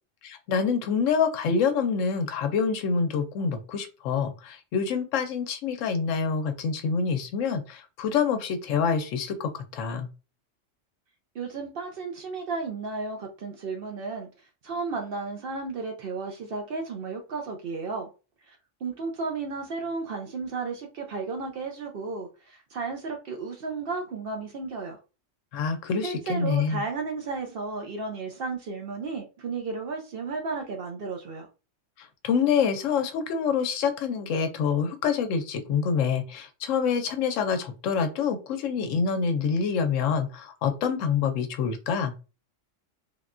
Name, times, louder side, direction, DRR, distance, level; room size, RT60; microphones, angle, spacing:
voice 1, 0.2-10.1 25.5-26.8 32.0-42.1, left 6 dB, 80° left, 7 dB, 0.9 m, -26 dB
voice 2, 11.3-14.3 14.6-18.1 18.5-18.6 18.8-25.0 26.0-31.5, right 4 dB, 60° right, 3 dB, 0.6 m, -33 dB
3.4 x 2.2 x 2.4 m, 0.32 s
omnidirectional pair, 1.3 m